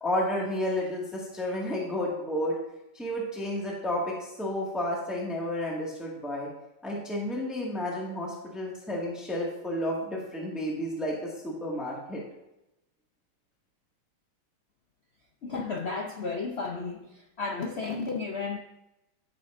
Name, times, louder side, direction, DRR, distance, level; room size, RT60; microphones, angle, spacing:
voice 1, 0.0-2.6 3.0-6.5 6.8-12.2, left 1 dB, ahead, -4 dB, 1.6 m, -31 dB
voice 2, 15.4-18.6, left 4 dB, 75° left, 2 dB, 0.6 m, -33 dB
14.0 x 6.8 x 2.6 m, 0.90 s
omnidirectional pair, 2.1 m